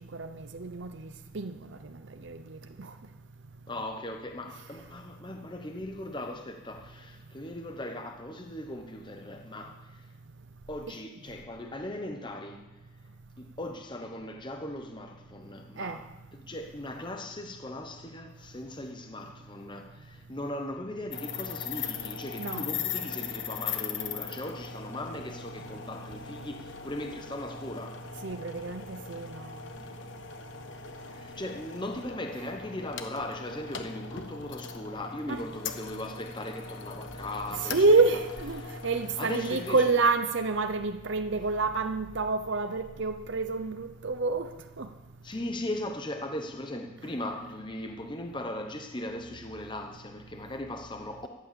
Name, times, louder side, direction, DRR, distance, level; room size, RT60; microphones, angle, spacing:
voice 1, 0.1-1.5 1.8-1.9 2.2-2.9 10.9-11.0 15.8-16.0 22.4-22.6 28.2-29.6 35.3-35.4 37.6-44.5 44.8-44.9, right 3 dB, 55° right, 0.7 m, -28 dB
voice 2, 3.7-10.1 10.7-12.7 13.4-16.0 16.3-28.0 31.2-38.0 38.6-38.7 39.2-39.9 45.2-51.3, left 1 dB, 20° left, 0.9 m, -38 dB
sound 1, 21.1-39.9, left 7 dB, 60° left, 1.2 m, -40 dB
14.5 x 11.5 x 7.0 m
head